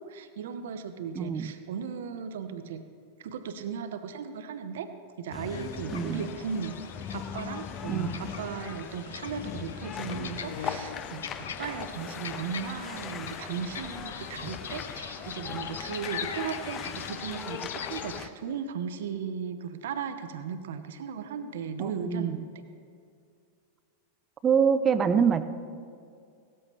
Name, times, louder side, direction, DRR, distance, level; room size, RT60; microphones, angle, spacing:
voice 1, 0.0-2.9 3.2-6.8 7.1-22.4, right 6 dB, 60° right, 9 dB, 0.8 m, -36 dB
voice 2, 1.1-1.5 5.9-6.2 7.9-8.2 21.8-22.4 24.4-25.4, right 7 dB, 25° right, 12 dB, 0.5 m, -25 dB
sound 1, 5.3-18.3, left 8 dB, 30° left, 0.5 m, -39 dB
sound 2, 5.5-18.2, left 6 dB, 65° left, 0.8 m, -41 dB
17.5 x 13.0 x 3.2 m, 2.3 s
figure-of-eight pair, 90°, 0 cm